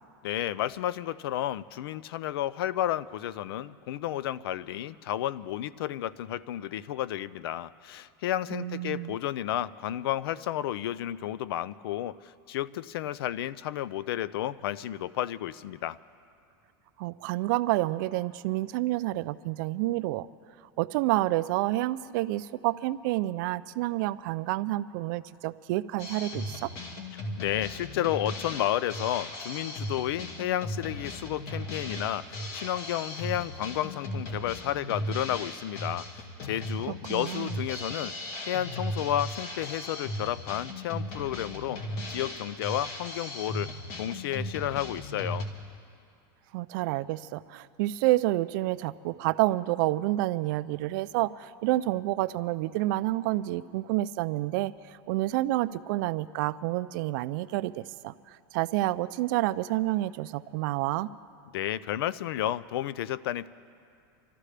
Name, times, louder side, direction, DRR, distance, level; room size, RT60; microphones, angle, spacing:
voice 1, 0.2-16.0 27.1-41.8 42.1-45.5 61.5-63.5, left 12 dB, 85° left, 19 dB, 0.4 m, -32 dB
voice 2, 8.5-9.2 17.0-20.3 20.8-26.7 37.1-37.6 46.5-61.1, right 17 dB, 60° right, 15 dB, 0.4 m, -29 dB
Drum kit, 26.0-45.4, left 1 dB, 50° left, 2.0 m, -37 dB
26.0 x 13.5 x 3.3 m, 2.4 s
supercardioid pair, 150°, 12 cm